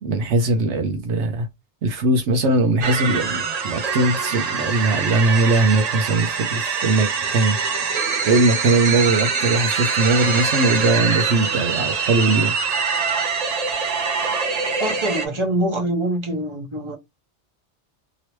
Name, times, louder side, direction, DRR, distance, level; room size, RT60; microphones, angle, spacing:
voice 1, 0.0-1.5 1.8-7.6 8.2-12.6, right 2 dB, 75° right, 0.9 m, -20 dB
sound 1, 2.8-15.3, right 5 dB, 45° right, 0.5 m, -24 dB
voice 2, 14.8-17.0, right 1 dB, 25° right, 1.1 m, -24 dB
3.0 x 3.0 x 3.0 m
omnidirectional pair, 1.2 m